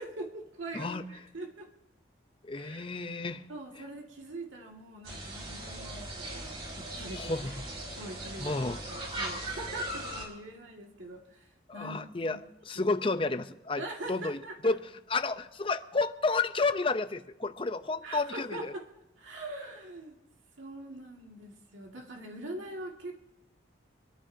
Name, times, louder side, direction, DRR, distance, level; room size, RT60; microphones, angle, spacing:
voice 1, 0.0-1.7 2.5-2.9 3.5-7.6 7.9-12.4 13.8-14.8 18.0-18.8 19.2-20.2 20.6-23.1, right 2 dB, 90° right, 0 dB, 2.1 m, -43 dB
voice 2, 0.7-1.1 2.4-3.5 7.1-7.6 8.4-8.8 11.7-12.4 12.7-13.8 14.1-14.8 15.1-18.7, left 3 dB, 25° left, 10 dB, 0.6 m, -31 dB
sound 1, 5.0-10.3, right 1 dB, 30° right, 4.8 m, -39 dB
25.0 x 13.5 x 2.8 m, 0.90 s
head